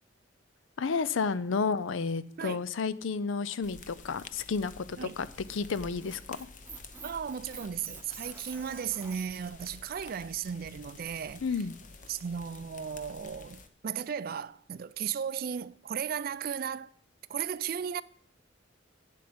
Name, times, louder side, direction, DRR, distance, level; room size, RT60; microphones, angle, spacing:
voice 1, 0.8-6.4 11.4-11.7, left 5 dB, 85° left, 0.5 m, -31 dB
sound 1, 3.6-13.7, left 3 dB, 40° left, 0.8 m, -50 dB
Squeak, 5.2-9.5, right 4 dB, 10° right, 0.8 m, -48 dB
voice 2, 7.0-11.5 12.1-16.9 17.3-18.0, right 7 dB, 50° right, 0.4 m, -35 dB
8.4 x 7.8 x 5.2 m
head